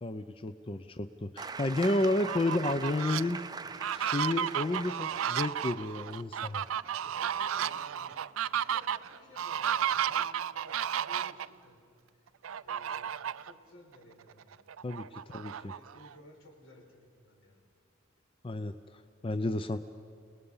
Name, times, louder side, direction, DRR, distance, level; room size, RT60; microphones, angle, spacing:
voice 1, 0.0-3.4 3.9-6.6 14.8-15.7 18.4-19.8, left 2 dB, 25° left, 10 dB, 0.5 m, -32 dB
voice 2, 0.6-1.2 7.0-8.3 8.7-11.9 12.1-12.3 12.6-14.7 14.9-15.2 15.5-17.6, left 1 dB, 80° left, 1 dB, 4.9 m, -57 dB
sound 1, 1.4-8.9 10.1-10.2, right 4 dB, 20° right, 0.5 m, -44 dB
Fowl, 2.1-3.2 3.7-11.5 12.4-13.5 13.9-14.0 14.4-16.1, right 9 dB, 85° right, 0.4 m, -33 dB
29.5 x 19.5 x 5.6 m, 2.4 s
head